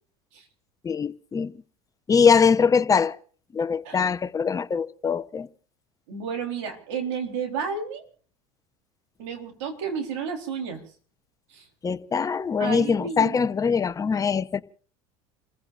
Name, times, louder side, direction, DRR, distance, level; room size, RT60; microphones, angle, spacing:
voice 1, 0.8-1.5 2.1-3.2 3.5-5.5 11.8-14.6, left 6 dB, 25° left, 0.9 m, -22 dB
voice 2, 6.1-8.0 9.2-10.8 11.5-11.6 12.6-13.4, right 6 dB, 80° right, 3.9 m, -31 dB
30.0 x 15.5 x 2.6 m
supercardioid pair, 100°, 15 cm